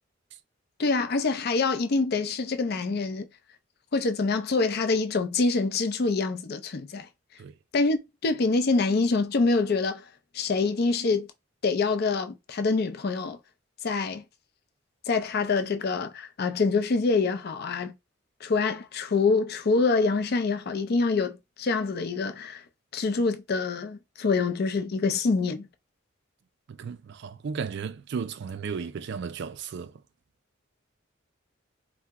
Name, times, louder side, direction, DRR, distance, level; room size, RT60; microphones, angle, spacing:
voice 1, 0.8-3.3 3.9-7.1 7.7-10.0 10.3-11.3 11.6-13.4 13.8-14.2 15.1-17.9 18.4-22.6 22.9-25.7, left 4 dB, 55° left, 0.5 m, -25 dB
voice 2, 26.7-29.9, right 6 dB, 60° right, 0.4 m, -34 dB
2.8 x 2.1 x 3.4 m
head